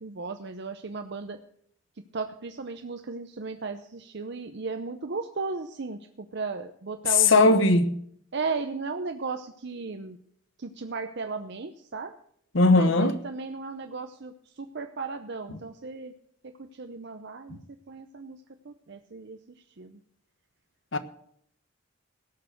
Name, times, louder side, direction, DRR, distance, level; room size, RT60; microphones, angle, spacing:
voice 1, 0.0-1.4 2.1-6.0 6.3-7.6 8.3-10.2 10.6-12.1 12.7-14.3 14.6-16.1 16.8-17.6 17.9-18.4 18.7-19.4 19.8-19.9, right 4 dB, 55° right, 0.7 m, -35 dB
voice 2, 7.1-7.9 12.5-13.1 15.5-15.6 20.9-21.0, left 3 dB, 65° left, 1.1 m, -19 dB
17.5 x 6.7 x 6.3 m
head